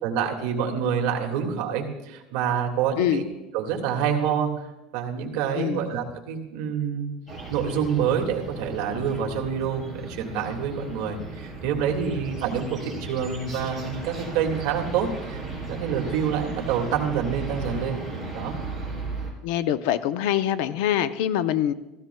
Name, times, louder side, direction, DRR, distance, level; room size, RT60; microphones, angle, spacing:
voice 1, 0.0-3.2 3.5-4.7 4.9-7.1 7.5-15.4 15.7-18.0 18.3-18.5, right 7 dB, 65° right, 1 dB, 1.9 m, -27 dB
sound 1, 7.3-19.3, right 3 dB, 20° left, 3.7 m, -36 dB
voice 2, 19.4-21.7, left 11 dB, 70° left, 13 dB, 0.5 m, -24 dB
15.5 x 15.0 x 2.2 m, 1.0 s
cardioid pair, 180°, 0 cm